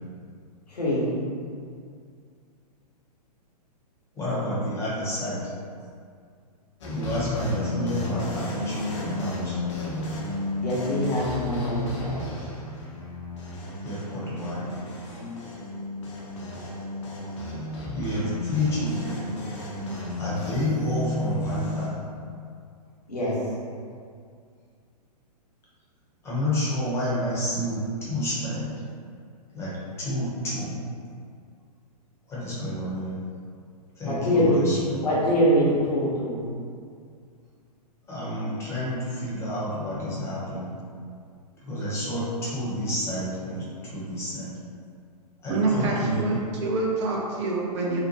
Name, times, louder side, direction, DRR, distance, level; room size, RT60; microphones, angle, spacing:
voice 1, 0.7-1.1 10.5-12.3 23.1-23.3 34.0-34.7 35.0-36.5, equal, 70° left, -6 dB, 1.0 m, -24 dB
voice 2, 4.1-5.5 6.9-9.6 13.8-14.8 17.9-19.2 20.2-22.0 26.2-28.7 29.5-30.8 32.3-33.2 34.0-35.0 38.1-40.8 41.6-44.6 45.4-46.4, equal, 15° left, -8 dB, 0.7 m, -29 dB
sound 1, 6.8-21.9, left 1 dB, 45° left, 0.6 m, -33 dB
voice 3, 45.5-48.0, right 3 dB, 45° right, -2 dB, 0.5 m, -26 dB
2.8 x 2.2 x 2.7 m, 2.3 s
figure-of-eight pair, 115°, 21 cm